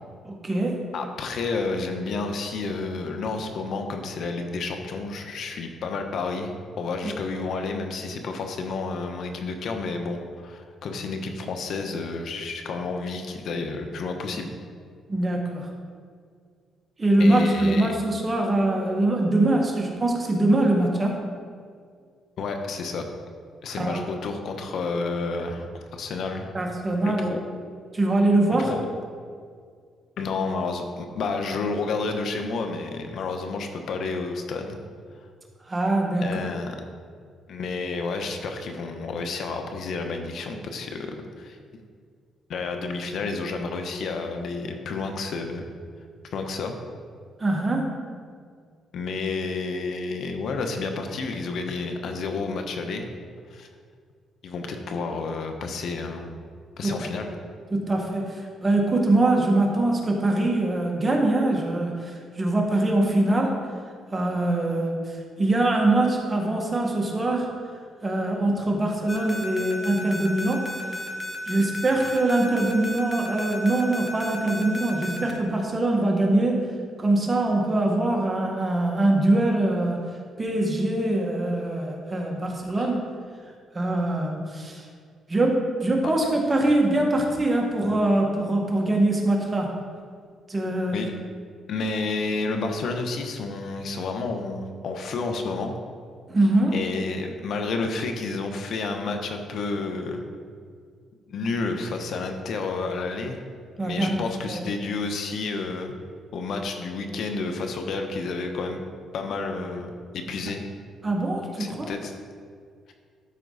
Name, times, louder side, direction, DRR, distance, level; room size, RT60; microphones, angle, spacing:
voice 1, 0.2-0.8 7.0-7.1 15.1-15.7 17.0-21.2 23.8-24.0 26.5-27.3 27.9-28.7 35.7-36.2 47.4-48.0 56.8-56.9 57.3-57.4 57.7-63.6 64.1-67.5 68.0-70.7 71.5-76.6 77.0-80.0 80.4-83.1 83.7-84.8 85.3-89.7 90.5-91.0 96.3-96.8 103.8-104.1 104.4-104.6 111.0-111.9, right 2 dB, 25° right, 0 dB, 1.7 m, -23 dB
voice 2, 0.9-14.5 17.2-17.9 22.4-23.0 23.6-26.5 27.0-27.4 28.6-28.9 30.2-34.8 36.2-36.8 37.5-41.6 42.5-45.7 46.3-46.7 48.9-53.1 53.5-53.7 54.4-56.3 56.8-57.3 82.8-83.0 90.9-91.1 91.7-95.7 96.7-100.3 101.3-103.4 103.8-105.9 106.3-108.8 109.1-110.6 111.4-112.2, left 3 dB, 70° left, 5 dB, 1.0 m, -30 dB
sound 1, 69.1-75.3, left 1 dB, 15° left, 1.5 m, -34 dB
12.5 x 4.5 x 4.1 m, 2.1 s
cardioid pair, 90°, 0 cm